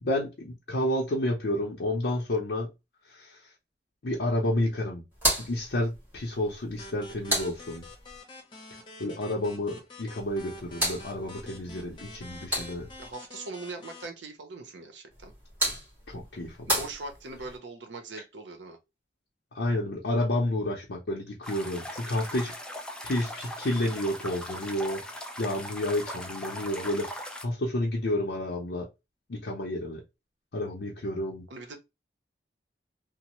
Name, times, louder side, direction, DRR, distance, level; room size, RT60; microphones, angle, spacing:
voice 1, 0.0-2.7 3.1-3.5 4.0-5.0 5.4-7.8 9.0-12.9 16.1-16.8 19.5-22.5 23.0-28.9 29.3-30.0 30.5-31.4, left 1 dB, 65° left, 0.6 m, -30 dB
sound 1, 5.1-8.2 10.2-13.1 15.1-17.6, equal, 10° right, 1.6 m, -34 dB
sound 2, 6.8-14.1, left 2 dB, 25° left, 0.8 m, -47 dB
voice 2, 13.0-15.3 16.7-18.8 31.5-31.8, right 3 dB, 85° right, 0.7 m, -41 dB
sound 3, 21.4-27.5, equal, 5° left, 0.3 m, -39 dB
3.0 x 2.0 x 2.9 m
head